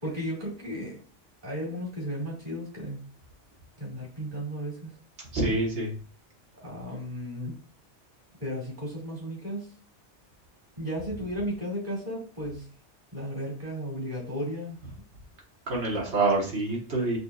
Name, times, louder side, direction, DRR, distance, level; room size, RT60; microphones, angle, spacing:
voice 1, 0.0-1.0 1.4-3.1 3.8-4.9 6.6-7.5 8.4-9.7 10.8-12.7 13.1-14.8, equal, 35° right, -5 dB, 2.6 m, -34 dB
voice 2, 5.3-5.9 15.7-17.2, right 2 dB, 70° right, -2 dB, 1.7 m, -26 dB
5.9 x 3.0 x 2.4 m, 0.40 s
omnidirectional pair, 1.2 m